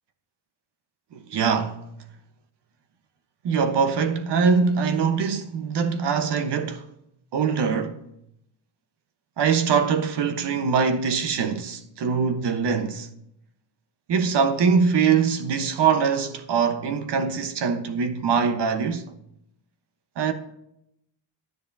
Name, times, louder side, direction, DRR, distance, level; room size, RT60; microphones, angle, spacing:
voice 1, 1.1-1.8 3.4-6.8 7.3-8.0 9.4-13.1 14.1-19.1 20.2-20.3, right 6 dB, 60° right, 1.1 m, -23 dB
10.5 x 9.6 x 2.7 m
cardioid pair, 105°, 45 cm